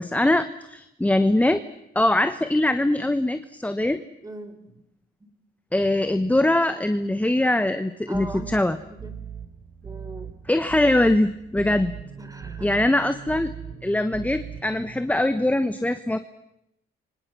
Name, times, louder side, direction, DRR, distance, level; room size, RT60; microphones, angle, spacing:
voice 1, 0.0-1.6 1.9-4.0 5.7-8.8 10.5-11.9 12.6-13.5 13.8-16.2, left 1 dB, 5° left, 10 dB, 1.2 m, -22 dB
voice 2, 4.2-4.8 5.2-5.3 8.1-8.6 8.9-9.2 9.8-10.3 12.2-12.8, right 1 dB, 15° right, 9 dB, 4.2 m, -40 dB
sound 1, 8.1-15.0, right 7 dB, 55° right, 5.4 m, -39 dB
29.5 x 25.0 x 6.1 m, 0.83 s
cardioid pair, 90°, 20 cm